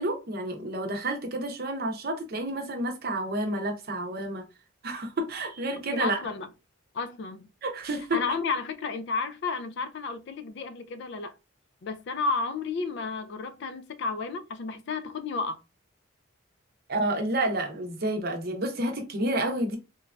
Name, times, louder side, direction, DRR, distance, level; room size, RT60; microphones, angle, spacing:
voice 1, 0.0-4.4 4.8-6.2 7.6-8.2 16.9-19.8, right 1 dB, 50° right, 0.7 m, -30 dB
voice 2, 5.9-6.5 6.9-7.5 8.1-11.3 11.8-15.6, left 4 dB, 55° left, 0.3 m, -32 dB
3.1 x 2.2 x 2.4 m
head